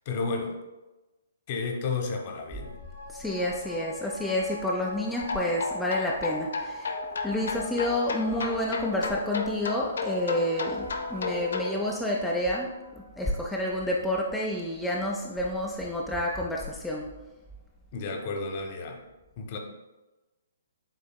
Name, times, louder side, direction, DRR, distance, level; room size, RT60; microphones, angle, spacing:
voice 1, 0.1-0.5 1.5-2.7 17.9-19.0 19.4-19.6, left 4 dB, 40° left, 3 dB, 0.8 m, -32 dB
sound 1, 2.3-15.1 15.5-15.6, left 1 dB, 85° left, 1.1 m, -46 dB
voice 2, 3.1-7.0 7.2-17.1, left 1 dB, 5° left, -4 dB, 0.4 m, -29 dB
sound 2, 5.2-11.8, left 3 dB, 70° left, 0.5 m, -33 dB
7.3 x 2.6 x 2.2 m, 1.1 s
figure-of-eight pair, 130°, 0 cm